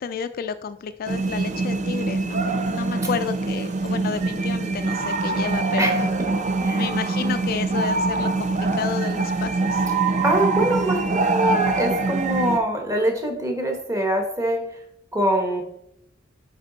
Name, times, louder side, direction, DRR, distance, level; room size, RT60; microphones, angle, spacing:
voice 1, 0.0-6.0 6.7-9.8, left 6 dB, 50° left, 10 dB, 0.3 m, -31 dB
sound 1, 1.1-12.6, right 3 dB, 40° right, 0.6 m, -24 dB
voice 2, 5.8-6.3 6.6-6.9 10.2-14.6 15.1-15.6, right 1 dB, 15° right, 3 dB, 1.1 m, -24 dB
8.7 x 4.0 x 3.9 m, 0.77 s
head